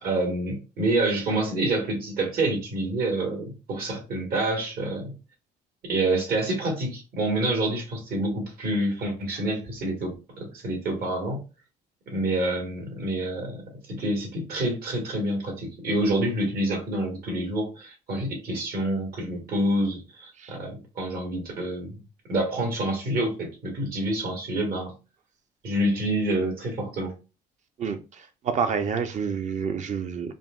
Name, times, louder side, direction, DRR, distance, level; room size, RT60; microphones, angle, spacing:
voice 1, 0.0-5.1 5.8-11.4 12.1-13.6 13.9-22.0 22.3-24.9 25.6-27.1, right 1 dB, 65° right, 2 dB, 1.8 m, -27 dB
voice 2, 28.4-30.3, right 6 dB, 45° right, 9 dB, 0.7 m, -28 dB
4.8 x 2.8 x 2.4 m, 0.30 s
cardioid pair, 110°, 17 cm